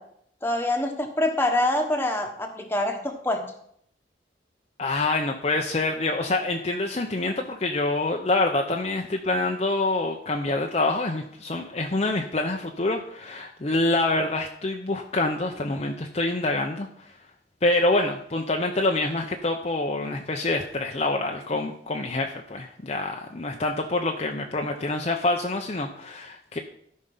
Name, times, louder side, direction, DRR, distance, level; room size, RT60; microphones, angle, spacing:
voice 1, 0.4-3.4, left 1 dB, 10° left, 3 dB, 1.2 m, -25 dB
voice 2, 4.8-17.1 17.6-26.6, left 2 dB, 35° left, 2 dB, 0.7 m, -26 dB
13.5 x 5.4 x 5.5 m, 0.69 s
head